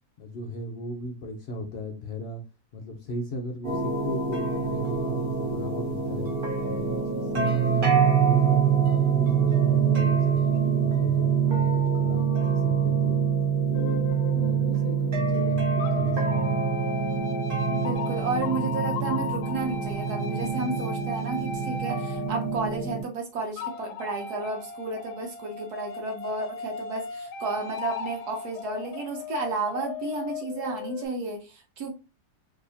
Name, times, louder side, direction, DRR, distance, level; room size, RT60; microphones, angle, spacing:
voice 1, 0.2-2.4 2.7-6.3 6.6-12.3 12.6-13.2 13.7-16.6, left 1 dB, 60° left, 0.7 m, -37 dB
sound 1, 3.6-23.0, right 6 dB, 35° right, 1.1 m, -25 dB
voice 2, 7.3-7.8 11.5-11.9 14.4-14.8 17.7-32.0, right 3 dB, 70° right, 1.4 m, -32 dB
sound 2, 13.7-15.3 15.8-22.9 23.6-31.1, left 4 dB, 80° left, 1.1 m, -37 dB
4.2 x 2.7 x 2.7 m
omnidirectional pair, 1.8 m